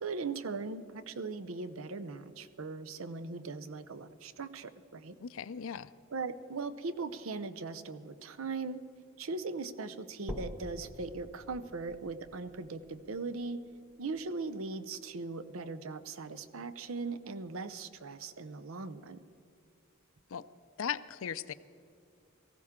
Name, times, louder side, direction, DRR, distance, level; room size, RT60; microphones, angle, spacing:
voice 1, 0.0-5.2 6.1-8.8 9.2-13.6 14.0-19.2, right 3 dB, 75° right, 12 dB, 0.7 m, -39 dB
voice 2, 5.2-5.9 20.3-20.4 20.8-21.5, left 8 dB, 70° left, 16 dB, 0.4 m, -37 dB
sound 1, 10.3-14.3 14.8-14.9 15.5-15.6 15.9-16.0 16.9-17.0, equal, 5° right, 1.0 m, -47 dB
18.5 x 15.0 x 3.7 m, 2.6 s
head